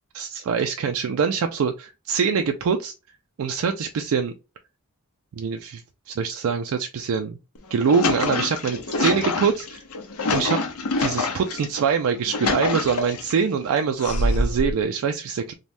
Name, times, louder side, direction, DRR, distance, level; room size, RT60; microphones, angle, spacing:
voice 1, 0.1-2.9 3.4-4.3 5.4-5.8 6.1-7.4 7.7-9.8 10.3-10.6 11.0-15.5, right 6 dB, 70° right, 5 dB, 0.3 m, -24 dB
sound 1, 7.6-11.7 12.1-13.4 14.0-14.7, left 2 dB, 75° left, 0.7 m, -25 dB
3.2 x 2.2 x 2.5 m, 0.29 s
head